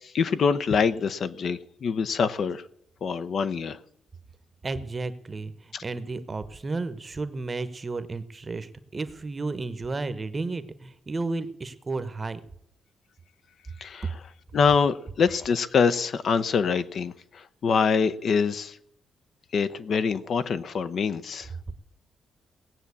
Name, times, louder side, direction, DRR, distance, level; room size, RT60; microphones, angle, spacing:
voice 1, 0.0-2.6 3.0-3.8 5.7-5.8 13.8-14.1 14.5-18.8 19.5-21.5, left 5 dB, 50° left, 0.7 m, -25 dB
voice 2, 4.6-12.4, right 3 dB, 25° right, 0.9 m, -33 dB
18.0 x 7.4 x 8.3 m
cardioid pair, 140°, 0 cm